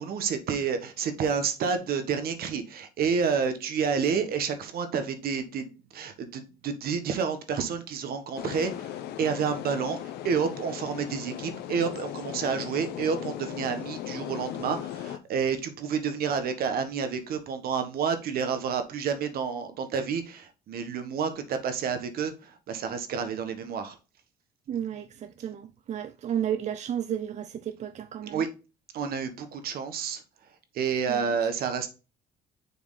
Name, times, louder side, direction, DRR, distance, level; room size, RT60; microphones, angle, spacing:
voice 1, 0.0-23.9 28.2-28.5 28.9-30.2 30.7-31.9, right 6 dB, 65° right, 1.4 m, -29 dB
sound 1, 8.4-15.2, left 11 dB, 75° left, 0.8 m, -37 dB
voice 2, 24.7-28.4 31.1-31.3, right 9 dB, 45° right, 0.5 m, -33 dB
7.0 x 4.4 x 4.0 m
cardioid pair, 110°, 17 cm